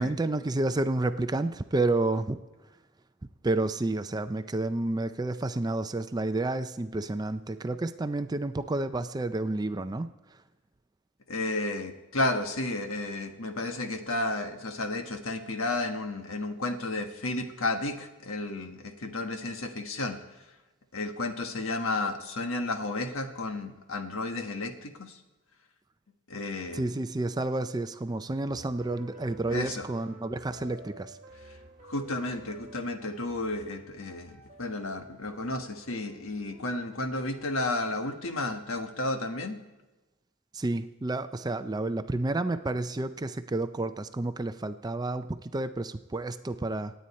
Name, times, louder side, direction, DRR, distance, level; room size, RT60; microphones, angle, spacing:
voice 1, 0.0-2.4 3.4-10.1 26.7-31.2 40.5-46.9, right 2 dB, 20° right, 10 dB, 0.4 m, -30 dB
voice 2, 11.3-20.2 20.9-25.2 26.3-27.0 29.5-29.9 31.5-31.6 31.9-39.6, left 2 dB, 70° left, 6 dB, 1.4 m, -32 dB
sound 1, 28.5-38.7, right 1 dB, 35° right, 1.3 m, -51 dB
26.5 x 9.2 x 4.3 m, 1.1 s
head